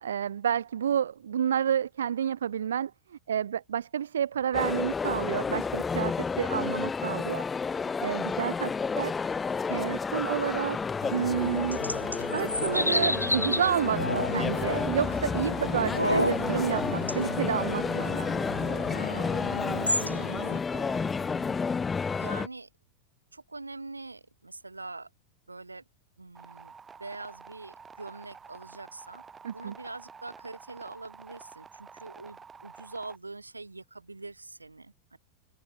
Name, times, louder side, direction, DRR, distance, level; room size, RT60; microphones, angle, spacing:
voice 1, 0.0-2.9 3.3-7.4 8.0-8.7 9.0-9.1 9.7-10.8 11.1-11.8 12.3-18.5 29.4-29.7, right 9 dB, 65° right, 1.0 m, -30 dB
sound 1, 4.5-22.5, left 5 dB, 15° left, 0.6 m, -31 dB
sound 2, 11.0-20.6, left 1 dB, 85° left, 2.3 m, -32 dB
voice 2, 20.7-21.6 22.2-22.7 23.3-25.1 25.5-25.8 26.2-26.7 27.0-29.2 29.5-35.2, right 3 dB, 80° right, 3.6 m, -44 dB
sound 3, 26.3-33.2, right 6 dB, 15° right, 6.2 m, -49 dB
open air
figure-of-eight pair, 90°, 0 cm